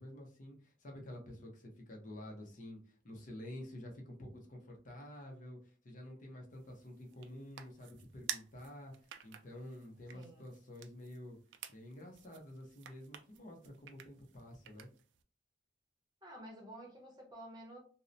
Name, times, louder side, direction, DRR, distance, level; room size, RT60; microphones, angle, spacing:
voice 1, 0.0-11.4 11.7-14.9, left 1 dB, 45° left, 1 dB, 0.6 m, -50 dB
sound 1, 6.5-15.2, right 10 dB, 75° right, 0.3 m, -51 dB
voice 2, 10.1-10.5 16.2-17.8, right 1 dB, 25° right, -1 dB, 0.8 m, -51 dB
2.6 x 2.0 x 2.6 m, 0.41 s
head